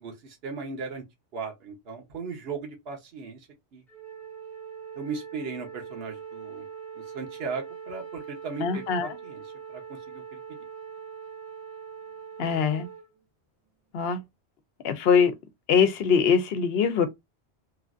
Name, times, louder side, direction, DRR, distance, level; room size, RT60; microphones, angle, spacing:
voice 1, 0.0-1.0 1.3-3.5 3.7-3.8 5.0-6.7 7.0-9.4 9.7-10.4, right 5 dB, 65° right, 1.1 m, -37 dB
Wind instrument woodwind instrument, 3.9-13.0, right 7 dB, ahead, 0.8 m, -42 dB
voice 2, 8.6-9.2 12.4-12.9 13.9-14.2 14.8-15.3 15.7-17.1, left 6 dB, 70° left, 0.8 m, -22 dB
3.1 x 2.4 x 2.4 m
omnidirectional pair, 1.1 m